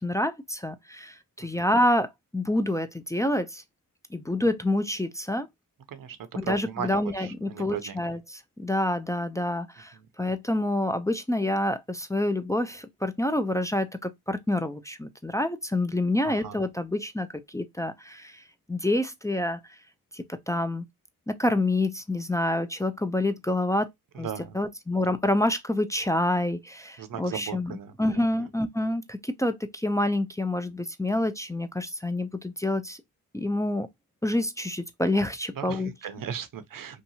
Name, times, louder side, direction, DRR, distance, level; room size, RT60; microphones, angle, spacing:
voice 1, 0.0-3.6 4.1-5.5 6.4-18.4 18.7-19.6 20.1-20.8 21.3-23.9 24.2-24.3 24.5-27.7 28.0-33.0 33.3-33.9 34.2-35.9, left 1 dB, 10° left, 0.3 m, -27 dB
voice 2, 6.4-8.2 9.9-10.1 16.2-16.6 24.1-24.6 27.0-28.5 35.6-37.0, right 8 dB, 55° right, 0.6 m, -37 dB
2.8 x 2.3 x 2.7 m
supercardioid pair, 50°, 40 cm